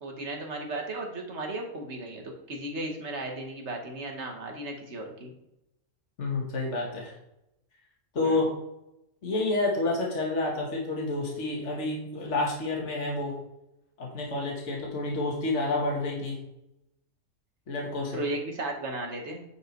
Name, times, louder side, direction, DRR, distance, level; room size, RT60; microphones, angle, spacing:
voice 1, 0.0-5.3 8.2-8.4 18.1-19.4, right 2 dB, 50° right, 2 dB, 1.9 m, -35 dB
voice 2, 6.2-7.1 8.1-8.5 9.2-13.3 14.0-16.4 17.7-18.2, left 2 dB, 55° left, -2 dB, 2.1 m, -29 dB
9.5 x 5.1 x 4.6 m, 0.86 s
omnidirectional pair, 1.5 m